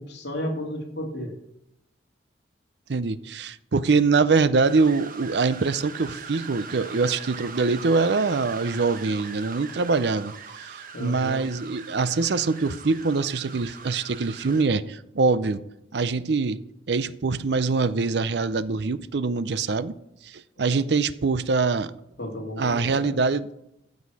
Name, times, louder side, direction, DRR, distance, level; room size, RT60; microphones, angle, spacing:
voice 1, 0.0-1.3 10.9-11.5 22.2-23.2, left 1 dB, 70° left, 0 dB, 2.5 m, -33 dB
voice 2, 2.9-15.6 15.9-19.9 20.2-21.9 22.6-23.5, right 4 dB, 65° right, 15 dB, 0.5 m, -24 dB
sound 1, 4.6-14.6, right 5 dB, 50° right, 1.0 m, -41 dB
15.0 x 6.3 x 4.8 m, 0.83 s
head